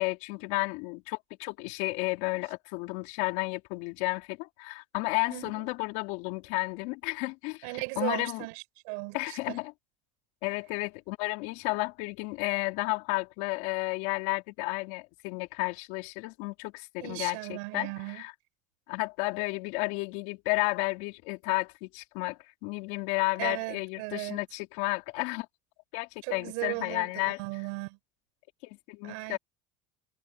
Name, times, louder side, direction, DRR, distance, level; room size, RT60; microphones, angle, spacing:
voice 1, 0.0-7.7 8.0-8.5 9.1-9.7 10.4-18.3 18.9-25.5 25.9-27.4 28.6-29.4, left 25 dB, 75° left, 3.9 m, -32 dB
voice 2, 5.3-5.7 7.6-9.6 17.0-18.2 23.4-24.4 26.2-27.1 27.4-28.0 29.0-29.4, right 30 dB, 80° right, 5.3 m, -37 dB
supercardioid pair, 110°, 15 cm